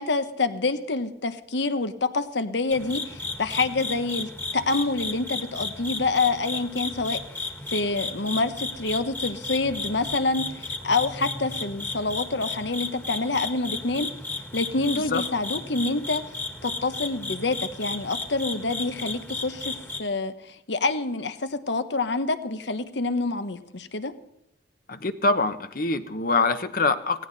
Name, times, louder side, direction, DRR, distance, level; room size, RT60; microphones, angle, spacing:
voice 1, 0.0-14.1 14.5-16.2 16.6-19.7 20.0-24.1, left 3 dB, 75° left, 11 dB, 1.2 m, -27 dB
sound 1, 2.7-20.0, left 3 dB, 10° left, 1.6 m, -34 dB
voice 2, 24.9-27.3, left 3 dB, 55° left, 10 dB, 1.1 m, -24 dB
17.5 x 16.5 x 4.2 m, 0.80 s
head